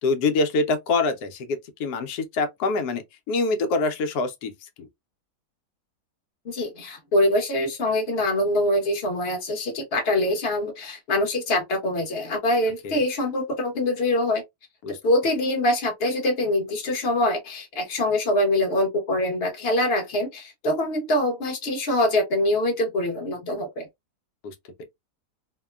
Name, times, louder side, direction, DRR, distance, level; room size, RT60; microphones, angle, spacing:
voice 1, 0.0-4.5 12.8-13.0 14.8-15.0 24.4-24.5, left 3 dB, 70° left, 1.1 m, -25 dB
voice 2, 6.4-14.4 15.0-23.9, left 1 dB, 45° left, 1.1 m, -24 dB
2.9 x 2.1 x 2.3 m
omnidirectional pair, 1.8 m